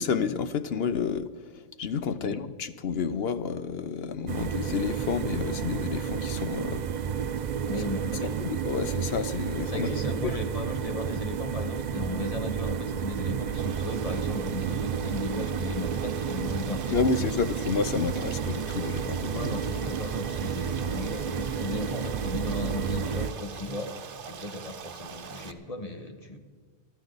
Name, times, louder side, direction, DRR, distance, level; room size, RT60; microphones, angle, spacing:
voice 1, 0.0-6.9 8.2-9.9 10.2-10.4 16.9-19.5, left 6 dB, 55° left, 0.8 m, -30 dB
voice 2, 2.1-2.5 7.7-8.4 9.7-17.6 19.3-26.4, left 2 dB, 25° left, 1.4 m, -36 dB
sound 1, 4.3-23.3, right 7 dB, 90° right, 0.3 m, -31 dB
Stream, 13.5-25.5, right 6 dB, 60° right, 1.2 m, -43 dB
23.0 x 13.5 x 4.0 m
omnidirectional pair, 1.4 m